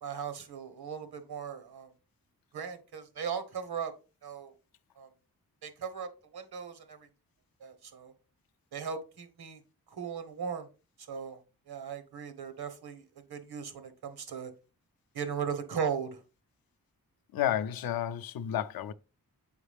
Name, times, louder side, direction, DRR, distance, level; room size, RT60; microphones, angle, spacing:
voice 1, 0.0-1.9 2.5-3.9 4.2-4.5 5.0-5.1 5.6-7.1 7.6-8.1 8.7-9.6 9.9-10.7 11.0-11.4 11.7-14.5 15.1-16.2, right 7 dB, 85° right, 1.2 m, -38 dB
voice 2, 17.3-18.9, left 11 dB, 70° left, 0.5 m, -31 dB
7.1 x 4.8 x 3.4 m
cardioid pair, 80°, 37 cm